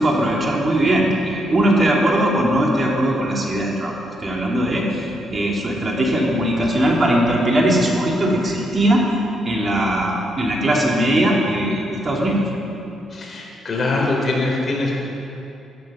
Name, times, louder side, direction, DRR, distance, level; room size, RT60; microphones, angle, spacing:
voice 1, 0.0-3.9 4.2-9.1 9.4-12.4, right 1 dB, 35° right, -2 dB, 2.8 m, -19 dB
voice 2, 13.1-14.9, left 2 dB, 40° left, -2 dB, 4.1 m, -22 dB
13.0 x 12.5 x 6.2 m, 2.8 s
cardioid pair, 90°, 0 cm